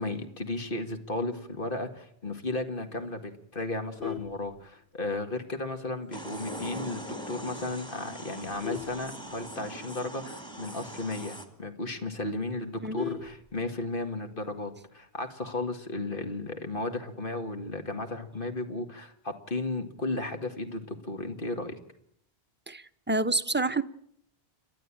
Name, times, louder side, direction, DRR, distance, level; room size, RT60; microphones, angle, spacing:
voice 1, 0.0-21.8, left 2 dB, 60° left, 2.3 m, -34 dB
Vehicle horn car horn honking, 3.7-5.2 5.7-5.9 6.2-6.3 6.7-6.8 7.1-7.5 8.1-9.9 10.3-10.4 10.6-10.7 11.1-11.2 11.6-11.7 12.0-14.0 15.2-15.6, left 9 dB, 85° left, 1.9 m, -40 dB
sound 1, 6.1-11.5, right 1 dB, 5° left, 2.3 m, -41 dB
voice 2, 22.7-23.8, right 2 dB, 10° right, 0.7 m, -28 dB
29.5 x 12.0 x 8.8 m
omnidirectional pair, 1.0 m